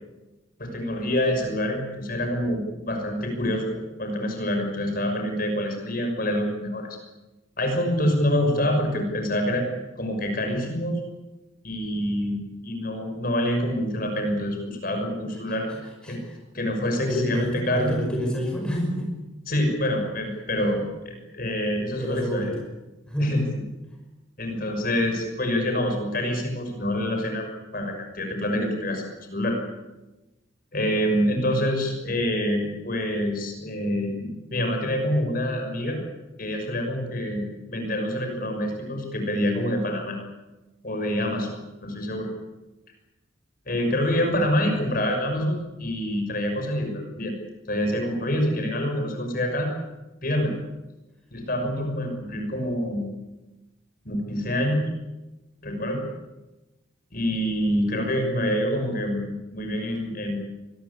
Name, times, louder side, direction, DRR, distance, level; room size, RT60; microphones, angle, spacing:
voice 1, 0.6-6.9 7.6-9.7 10.0-11.0 11.6-15.7 16.1-16.2 16.5-17.9 19.5-22.5 23.2-23.6 24.4-27.5 27.7-29.6 30.7-36.0 36.4-40.2 40.8-41.5 41.8-42.3 43.7-47.3 47.7-49.7 50.2-50.5 51.3-53.1 54.0-54.9 55.6-56.0 57.1-60.4, equal, 45° left, 4 dB, 6.2 m, -26 dB
voice 2, 17.1-19.1 22.0-22.5 23.1-23.5, equal, 5° left, 0 dB, 5.5 m, -27 dB
24.5 x 20.5 x 8.5 m, 1.1 s
head